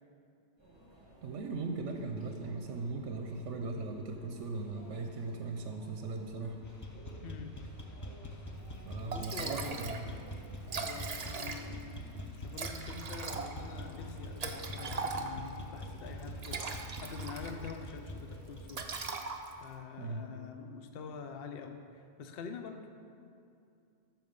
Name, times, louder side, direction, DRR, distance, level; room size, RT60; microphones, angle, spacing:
Conversation / Chatter / Crowd, 0.6-19.0, right 1 dB, 20° right, 2.8 m, -56 dB
voice 1, 1.2-6.6 8.9-10.1 20.0-20.3, right 3 dB, 80° right, 4 dB, 1.0 m, -39 dB
sound 1, 6.6-19.1, equal, 20° left, 0.5 m, -44 dB
voice 2, 7.2-7.5 9.0-9.8 10.8-16.6 17.0-19.2 19.6-22.9, left 5 dB, 60° left, 5 dB, 0.8 m, -46 dB
Liquid, 8.7-8.8 9.1-10.0 10.3-10.4 10.6-11.9 12.5-15.6 16.2-17.8 18.1-18.3 18.7-19.7, right 4 dB, 40° right, 0.6 m, -39 dB
13.0 x 4.4 x 6.7 m, 2.5 s
omnidirectional pair, 1.2 m